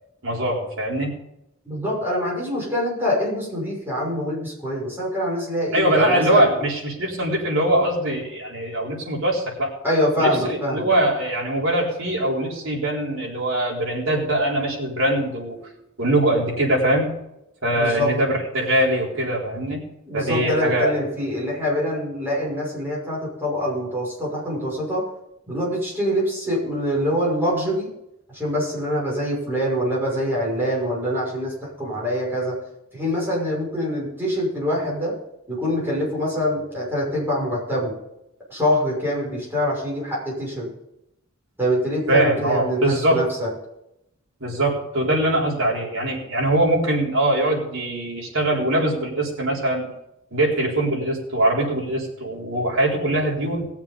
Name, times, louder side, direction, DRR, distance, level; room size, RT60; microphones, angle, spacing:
voice 1, 0.2-1.1 5.7-9.7 10.2-15.6 16.0-17.1 17.6-19.8 20.1-21.0 42.1-43.2 44.4-49.9 50.3-53.7, right 1 dB, 70° right, -3 dB, 4.1 m, -22 dB
voice 2, 1.6-6.5 9.8-10.9 17.7-18.2 20.1-25.0 25.5-27.9 28.3-32.6 32.9-35.1 35.5-37.9 38.5-40.7 41.6-43.5, equal, 10° right, -6 dB, 6.0 m, -24 dB
19.5 x 7.3 x 5.3 m, 0.83 s
head